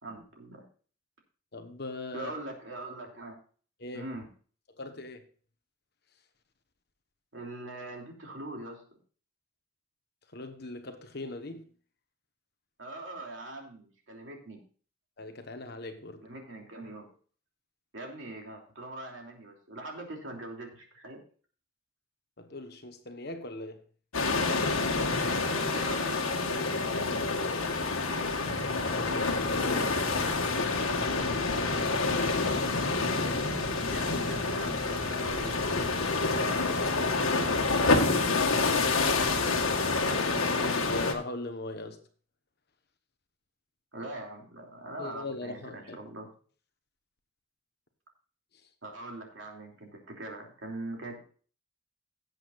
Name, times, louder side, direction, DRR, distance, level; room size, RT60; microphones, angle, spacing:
voice 1, 0.0-0.6 2.1-3.4 3.9-4.3 7.3-8.8 12.8-14.6 16.2-17.1 17.9-21.2 25.0-26.2 33.9-35.8 36.3-38.6 43.9-46.3 48.8-51.2, right 2 dB, 65° right, 3.1 m, -42 dB
voice 2, 1.5-2.3 3.8-4.0 4.8-5.2 10.3-11.7 15.2-16.2 22.4-23.8 28.9-31.4 40.0-42.0 45.0-46.0, left 2 dB, 50° left, 1.3 m, -40 dB
sound 1, 24.1-41.1, left 3 dB, 90° left, 1.7 m, -28 dB
sound 2, 28.5-39.6, left 1 dB, 10° left, 0.8 m, -43 dB
17.5 x 8.0 x 2.5 m
head